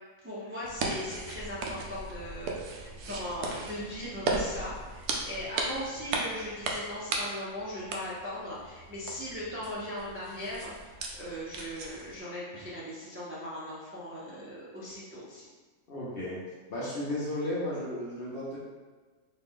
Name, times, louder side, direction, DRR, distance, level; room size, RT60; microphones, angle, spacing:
voice 1, 0.2-15.5, left 1 dB, 15° right, -8 dB, 0.4 m, -39 dB
sound 1, 0.6-12.2, right 3 dB, 90° right, 1.1 m, -37 dB
voice 2, 15.9-16.4 16.7-18.6, left 1 dB, 50° left, -6 dB, 0.8 m, -34 dB
4.1 x 2.3 x 3.6 m, 1.4 s
omnidirectional pair, 1.5 m